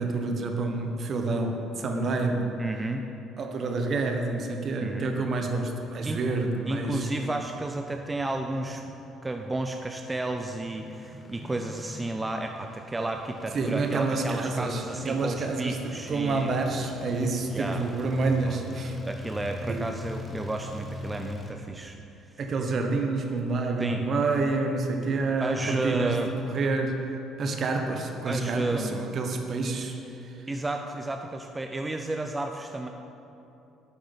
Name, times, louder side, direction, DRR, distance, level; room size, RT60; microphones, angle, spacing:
voice 1, 0.0-2.5 3.4-7.1 13.5-19.0 19.7-19.9 22.4-26.2 26.5-27.0 27.4-30.0 30.2-30.4, right 3 dB, 50° right, 4 dB, 1.2 m, -28 dB
voice 2, 2.6-3.0 4.8-5.1 6.0-6.2 6.7-8.8 9.2-16.6 17.5-17.8 18.4-18.6 19.0-22.0 23.8-24.0 25.4-26.3 28.3-29.0 30.5-32.9, right 2 dB, 20° right, 4 dB, 0.6 m, -32 dB
sound 1, 5.0-21.5, left 1 dB, 30° left, 1.3 m, -43 dB
11.0 x 8.3 x 4.1 m, 2.8 s
hypercardioid pair, 55°, 0 cm